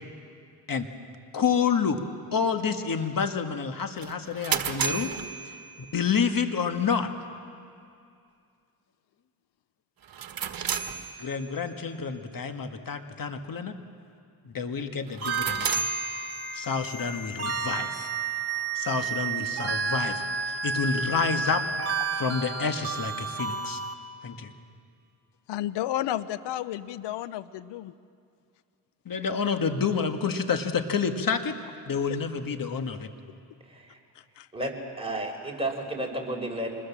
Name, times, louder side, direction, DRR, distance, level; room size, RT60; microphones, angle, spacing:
voice 1, 1.3-2.0 2.3-5.1 5.9-7.1 11.2-13.7 14.5-15.8 16.5-18.1 18.8-21.6 22.2-23.8 24.2-24.5 29.1-31.6 31.9-33.1, left 6 dB, 55° left, 7 dB, 1.9 m, -28 dB
sound 1, 4.0-6.3 10.0-11.7 15.1-16.9, right 6 dB, 55° right, 1.5 m, -33 dB
sound 2, 15.2-23.9, right 5 dB, 35° right, 2.2 m, -31 dB
voice 2, 25.5-27.9 34.4-34.5, left 13 dB, 85° left, 16 dB, 0.7 m, -32 dB
voice 3, 33.7-34.0 34.5-36.7, right 1 dB, 15° right, 0 dB, 5.5 m, -32 dB
26.0 x 21.0 x 7.4 m, 2.4 s
cardioid pair, 60°, 40 cm